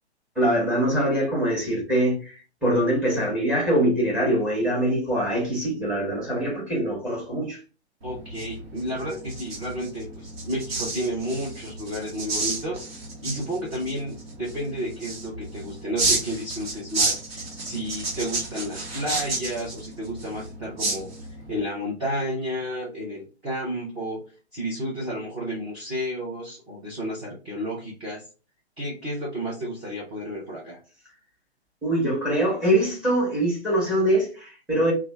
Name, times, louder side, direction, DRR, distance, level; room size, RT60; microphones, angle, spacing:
voice 1, 0.3-7.6 31.8-34.9, right 1 dB, 5° right, 1.0 m, -23 dB
voice 2, 8.0-12.8 13.2-21.1 21.5-24.2 24.5-28.2 28.8-30.8, equal, 20° right, 0.8 m, -31 dB
sound 1, 8.0-21.6, right 2 dB, 60° right, 1.1 m, -31 dB
3.1 x 2.3 x 3.3 m
figure-of-eight pair, 130°, 34 cm